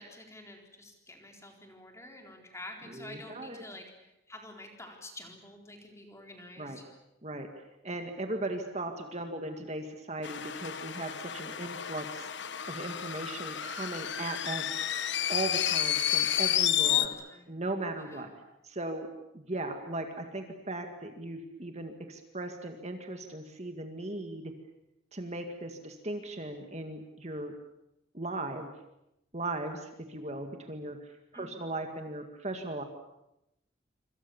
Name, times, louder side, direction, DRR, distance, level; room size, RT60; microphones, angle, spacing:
voice 1, 0.0-6.8 16.8-17.5 18.0-18.3 31.3-31.7, left 1 dB, 15° left, 2 dB, 4.1 m, -48 dB
voice 2, 2.9-3.6 6.6-6.8 7.2-12.3 12.7-14.8 15.3-17.1 17.5-18.3 18.6-19.1 19.3-24.5 25.1-27.5 28.1-28.7 29.3-32.8, right 2 dB, 35° right, 5 dB, 2.0 m, -38 dB
sound 1, 10.2-17.1, left 11 dB, 60° left, 1.2 m, -31 dB
26.5 x 26.5 x 7.2 m, 0.88 s
head